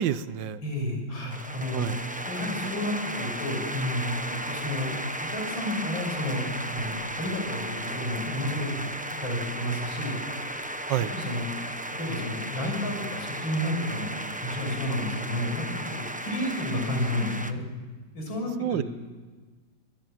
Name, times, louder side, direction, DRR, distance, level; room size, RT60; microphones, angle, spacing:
voice 1, 0.0-0.6 1.7-2.0 10.9-11.1 18.6-18.8, right 10 dB, 70° right, 15 dB, 1.5 m, -28 dB
voice 2, 0.6-1.9 2.3-4.0 4.5-4.9 5.3-8.9 9.2-10.1 11.0-11.4 11.9-14.1 14.4-17.6 18.1-18.8, left 1 dB, 80° left, 2 dB, 7.1 m, -31 dB
sound 1, 1.3-17.5, right 1 dB, 10° right, 0.3 m, -35 dB
25.0 x 18.5 x 7.5 m, 1.4 s
omnidirectional pair, 2.1 m